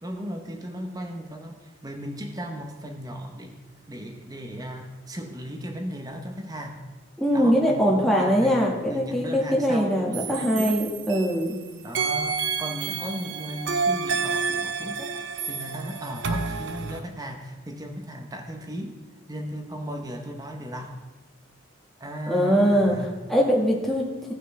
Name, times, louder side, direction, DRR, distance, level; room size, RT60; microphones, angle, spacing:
voice 1, 0.0-3.6 3.9-6.9 7.3-10.8 11.8-15.2 15.5-19.0 19.3-21.0 22.0-23.2, equal, 20° right, 3 dB, 1.0 m, -36 dB
voice 2, 7.2-11.6 22.3-22.9 23.3-24.1, equal, ahead, -2 dB, 1.6 m, -22 dB
sound 1, 10.1-11.5 11.9-17.0, right 5 dB, 70° right, 0.7 m, -29 dB
17.0 x 5.9 x 3.4 m, 1.2 s
head